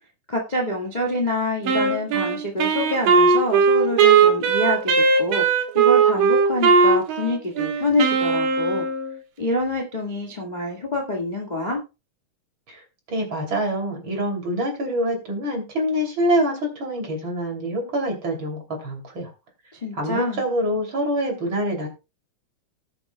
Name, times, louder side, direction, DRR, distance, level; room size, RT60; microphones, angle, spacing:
voice 1, 0.3-8.8 9.4-11.8 19.7-20.4, left 1 dB, 20° left, 0 dB, 1.1 m, -26 dB
Wind instrument woodwind instrument, 1.7-9.1, right 5 dB, 90° right, 3.2 m, -18 dB
voice 2, 13.1-19.3 19.9-21.9, equal, 40° right, 1 dB, 3.4 m, -25 dB
19.0 x 7.9 x 2.3 m, 0.28 s
omnidirectional pair, 3.8 m